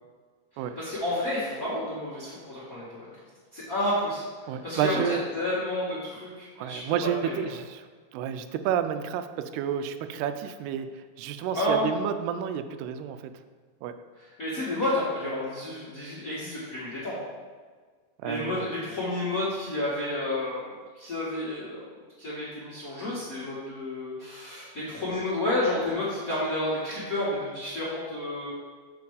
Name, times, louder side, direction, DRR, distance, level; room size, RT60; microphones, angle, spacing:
voice 1, 0.8-3.1 3.5-7.3 11.5-11.9 14.4-17.2 18.2-20.7 20.9-21.8 22.2-28.5, left 1 dB, 35° left, -10 dB, 1.3 m, -30 dB
voice 2, 4.5-5.2 6.6-7.9 8.1-10.9 11.2-13.3 13.8-14.0 18.2-18.7, right 9 dB, 90° right, 10 dB, 2.6 m, -30 dB
7.0 x 5.8 x 4.8 m, 1.5 s
omnidirectional pair, 4.5 m